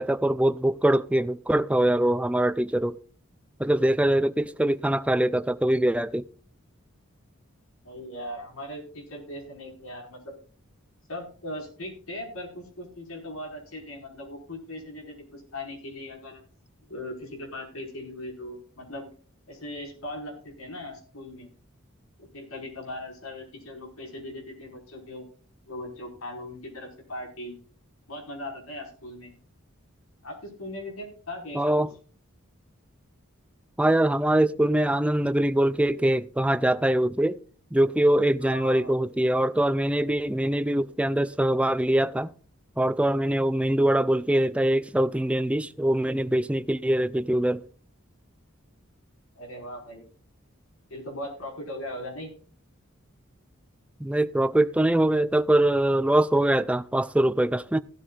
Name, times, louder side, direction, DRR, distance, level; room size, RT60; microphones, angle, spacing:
voice 1, 0.0-3.0 3.6-6.3 31.5-31.9 33.8-37.4 37.7-42.3 42.8-47.6 54.0-57.8, right 1 dB, 5° right, 0.4 m, -23 dB
voice 2, 7.8-10.3 11.1-16.4 16.9-19.1 19.5-21.5 22.2-25.3 25.7-27.6 28.1-29.3 30.2-31.9 38.4-38.9 49.4-50.1 50.9-52.3, left 1 dB, 90° left, 5.0 m, -39 dB
17.0 x 12.5 x 2.4 m
head